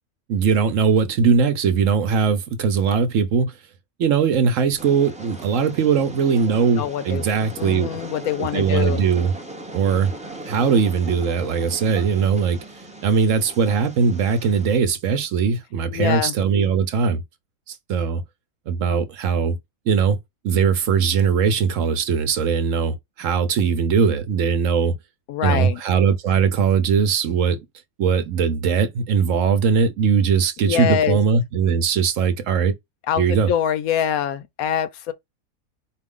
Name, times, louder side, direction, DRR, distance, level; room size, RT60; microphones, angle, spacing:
voice 1, 0.3-3.5 4.0-7.9 8.4-9.3 9.7-10.1 10.5-12.6 13.0-17.2 17.7-18.2 18.7-19.6 19.9-20.2 20.4-24.9 25.4-27.6 28.0-32.7 33.2-33.5, right 6 dB, 65° right, 1.0 m, -20 dB
Train, 4.8-14.8, right 1 dB, 5° right, 0.6 m, -38 dB
voice 2, 6.8-7.2 7.6-9.0 15.9-16.4 25.3-25.8 30.7-31.2 33.1-35.1, left 9 dB, 80° left, 1.0 m, -24 dB
4.4 x 2.4 x 3.6 m
omnidirectional pair, 1.6 m